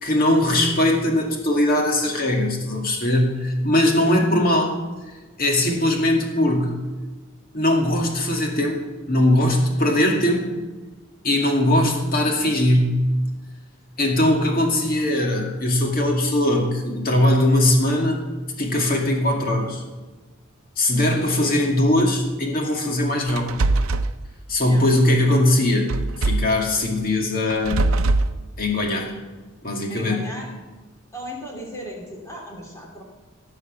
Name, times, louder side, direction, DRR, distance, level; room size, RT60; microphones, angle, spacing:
voice 1, 0.0-4.7 5.4-6.8 7.5-10.6 11.2-13.0 14.0-18.2 18.6-19.8 20.8-23.6 24.5-25.9 26.2-27.8 28.6-29.1 29.6-30.1, left 1 dB, 45° left, 1 dB, 2.2 m, -20 dB
sound 1, 23.3-24.1 25.9-26.6 27.5-28.3, right 2 dB, 85° right, 0.6 m, -21 dB
voice 2, 29.9-30.5 31.1-33.0, equal, 15° left, -1 dB, 2.9 m, -36 dB
17.0 x 6.6 x 6.0 m, 1.3 s
head